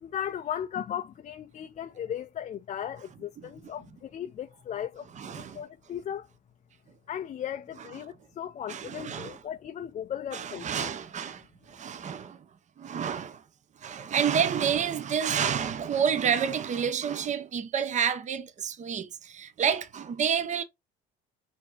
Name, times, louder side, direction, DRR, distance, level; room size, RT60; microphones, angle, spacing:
voice 1, 0.0-6.3 7.1-10.9, left 9 dB, 35° left, 0.4 m, -37 dB
voice 2, 5.1-5.6 8.7-9.4 10.3-12.4 12.8-13.4 13.8-20.6, right 7 dB, 35° right, 0.7 m, -29 dB
4.3 x 2.8 x 4.5 m
supercardioid pair, 85°, 21 cm